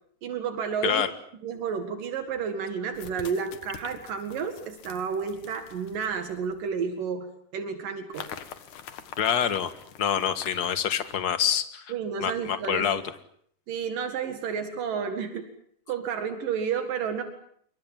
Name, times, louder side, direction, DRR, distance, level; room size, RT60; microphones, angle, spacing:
voice 1, 0.2-1.1 1.4-7.3 7.5-8.3 11.9-12.9 13.7-15.5 15.9-17.2, right 6 dB, 80° right, 7 dB, 3.6 m, -31 dB
sound 1, 1.6-1.7 2.9-6.8 8.1-11.2, left 9 dB, 70° left, 3.0 m, -45 dB
voice 2, 9.2-9.7 10.0-11.9 12.2-13.0, left 8 dB, 40° left, 11 dB, 1.6 m, -26 dB
27.0 x 25.0 x 7.5 m, 0.64 s
omnidirectional pair, 3.8 m